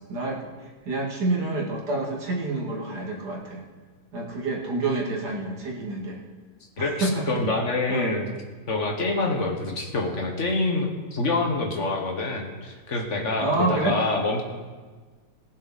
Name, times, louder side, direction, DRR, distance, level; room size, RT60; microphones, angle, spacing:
voice 1, 0.1-0.5 0.9-3.6 4.1-6.2 6.8-7.3 7.9-8.1 13.4-14.0, right 2 dB, 60° right, -1 dB, 2.5 m, -28 dB
voice 2, 6.8-8.3 8.7-14.4, left 2 dB, 45° left, 3 dB, 1.5 m, -26 dB
19.0 x 7.3 x 4.2 m, 1.4 s
omnidirectional pair, 2.0 m